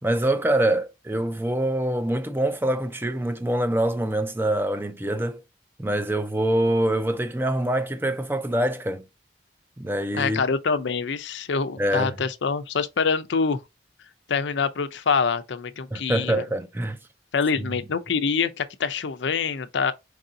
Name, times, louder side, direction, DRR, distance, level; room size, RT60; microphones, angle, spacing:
voice 1, 0.0-5.4 5.8-9.0 9.8-10.4 11.8-12.2 15.9-17.0 17.6-17.8, right 1 dB, 10° right, 0.4 m, -25 dB
voice 2, 10.1-13.6 14.3-16.4 17.3-19.9, left 5 dB, 80° left, 0.5 m, -25 dB
4.7 x 2.6 x 3.7 m
head